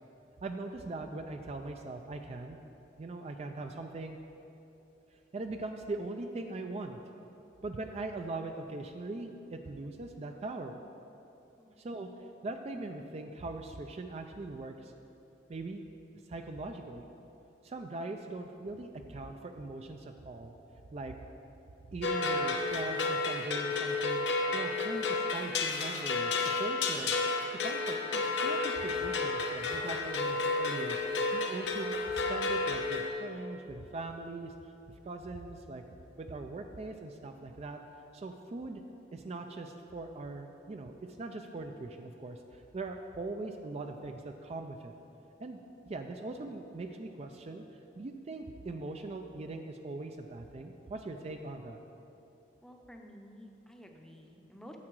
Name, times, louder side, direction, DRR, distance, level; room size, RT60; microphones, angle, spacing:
voice 1, 0.4-2.6 3.0-4.2 5.3-7.0 7.6-10.8 11.8-12.1 12.4-14.9 15.5-15.8 16.3-17.1 17.6-20.6 20.9-21.2 21.9-24.3 24.5-27.1 27.6-31.0 31.3-34.7 35.0-35.8 36.2-37.8 38.1-38.8 39.1-44.9 45.4-45.6 45.9-47.6 48.0-51.8, right 2 dB, 35° right, 5 dB, 0.4 m, -41 dB
voice 2, 11.6-12.2 52.6-54.8, equal, 5° left, 2 dB, 0.7 m, -52 dB
sound 1, 22.0-33.1, left 3 dB, 75° left, 0.9 m, -31 dB
9.7 x 7.5 x 4.6 m, 2.9 s
head